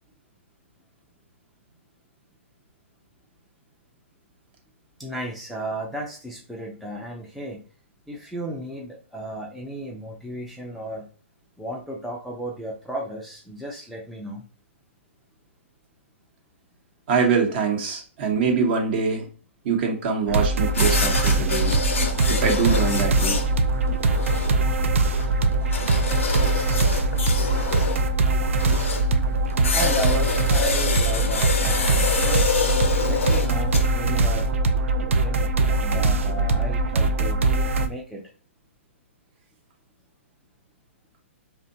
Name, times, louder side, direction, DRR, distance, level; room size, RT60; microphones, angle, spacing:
voice 1, 5.0-7.6 8.1-11.1 11.6-14.5 29.7-32.5 33.1-34.5 35.1-37.4 37.8-38.2, right 1 dB, ahead, -3 dB, 0.4 m, -34 dB
voice 2, 17.1-19.3 19.6-21.8 22.3-23.4 24.4-24.6 25.1-25.5 27.4-27.5, right 5 dB, 50° right, 2 dB, 0.9 m, -24 dB
sound 1, 20.3-37.9, right 3 dB, 75° right, 0.4 m, -22 dB
sound 2, 20.7-34.5, left 4 dB, 80° left, 0.6 m, -27 dB
2.6 x 2.1 x 2.7 m, 0.39 s
hypercardioid pair, 130°, 7 cm